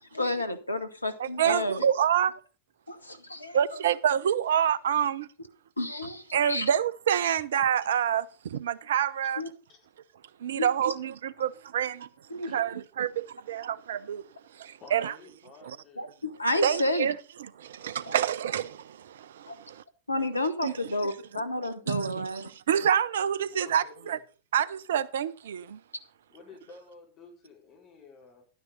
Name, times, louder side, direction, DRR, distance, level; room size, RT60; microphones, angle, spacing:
voice 1, 0.0-1.9 2.9-3.6 5.8-6.7 9.4-9.5 10.5-10.9 12.3-12.5 16.0-17.1 18.1-18.2 19.5-19.6 20.1-22.5, left 1 dB, 85° left, 1.2 m, -31 dB
voice 2, 1.2-2.3 3.5-5.3 6.3-9.4 10.4-12.1 12.5-14.2 14.6-15.1 16.6-17.1 17.6-19.8 20.6-20.7 21.9-22.3 22.7-24.2 24.5-25.8, right 9 dB, 60° right, 0.6 m, -27 dB
voice 3, 14.8-16.1 23.4-24.2 26.3-28.4, left 4 dB, 35° left, 4.8 m, -52 dB
11.5 x 9.6 x 4.0 m
figure-of-eight pair, 90°, 0 cm